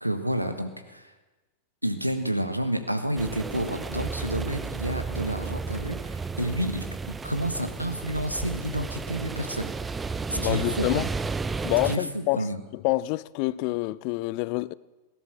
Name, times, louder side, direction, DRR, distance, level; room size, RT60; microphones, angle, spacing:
voice 1, 0.0-1.1 1.8-6.9 7.2-9.7 10.3-11.1 11.8-12.6, right 1 dB, 90° right, 1.3 m, -30 dB
sound 1, 3.2-12.0, right 4 dB, 15° right, 0.5 m, -33 dB
voice 2, 10.3-11.1 11.6-12.5 12.7-14.7, left 20 dB, 45° left, 0.4 m, -27 dB
17.5 x 11.0 x 7.1 m
figure-of-eight pair, 90°, 0 cm